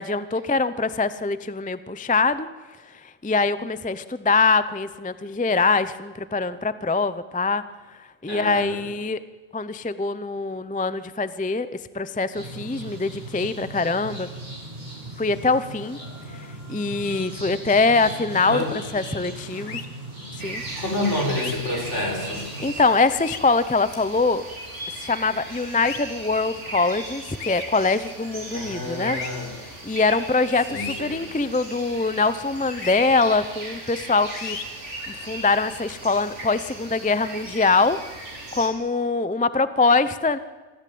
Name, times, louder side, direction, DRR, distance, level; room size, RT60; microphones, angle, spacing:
voice 1, 0.0-2.5 3.0-7.6 8.2-9.2 9.5-11.7 11.9-14.3 15.2-16.0 16.3-18.6 18.9-19.8 20.4-20.6 22.6-24.4 25.0-29.2 29.6-34.6 35.1-38.0 38.5-40.4, left 3 dB, 10° left, 14 dB, 0.3 m, -23 dB
voice 2, 8.3-8.8 18.5-18.7 20.8-22.5 28.5-29.5 30.7-31.2, left 1 dB, 55° left, 1 dB, 5.4 m, -28 dB
sound 1, 12.3-22.7, right 1 dB, 30° right, 8.3 m, -38 dB
sound 2, 19.7-19.9 21.3-21.5 23.1-23.4 25.8-26.0 27.4-27.6 29.1-29.3 30.7-31.0 32.8-33.0 34.3-34.6, left 7 dB, 85° left, 1.7 m, -34 dB
sound 3, 20.4-38.7, right 1 dB, 55° right, 4.0 m, -37 dB
26.0 x 14.0 x 8.6 m, 1.3 s
omnidirectional pair, 1.4 m